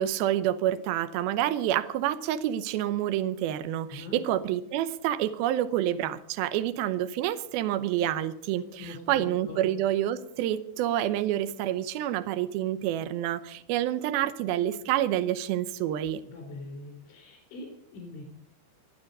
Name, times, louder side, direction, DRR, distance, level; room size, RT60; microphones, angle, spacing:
voice 1, 0.0-16.2, right 12 dB, 80° right, 12 dB, 2.2 m, -28 dB
voice 2, 3.9-4.2 8.8-9.6 16.3-18.3, left 2 dB, 75° left, 2 dB, 6.3 m, -42 dB
26.0 x 9.0 x 5.4 m, 0.69 s
omnidirectional pair, 5.4 m